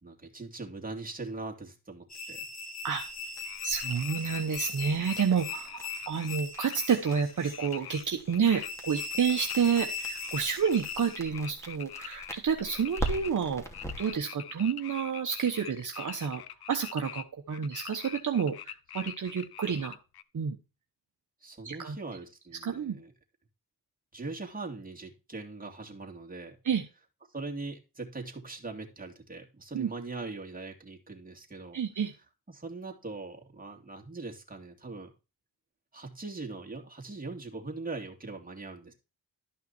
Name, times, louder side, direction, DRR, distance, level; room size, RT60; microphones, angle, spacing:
voice 1, 0.0-2.4 21.4-23.1 24.1-26.6 27.3-31.8 32.5-35.1 35.9-38.9, right 3 dB, 25° right, 0 dB, 2.8 m, -41 dB
sound 1, 2.1-11.2, left 4 dB, 45° left, 2.1 m, -40 dB
sound 2, 2.8-14.2, right 1 dB, 5° left, 2.6 m, -42 dB
sound 3, 3.4-8.7 9.0-9.6 10.0-17.2 17.5-20.2, left 11 dB, 85° left, 0.7 m, -44 dB
voice 2, 3.6-13.6 14.0-16.4 16.7-20.0 20.3-20.6 21.6-22.0 22.6-23.0 26.6-26.8 29.7-29.9 31.7-32.1, right 6 dB, 55° right, 3 dB, 1.2 m, -29 dB
12.5 x 5.7 x 4.4 m, 0.30 s
cardioid pair, 70°, 37 cm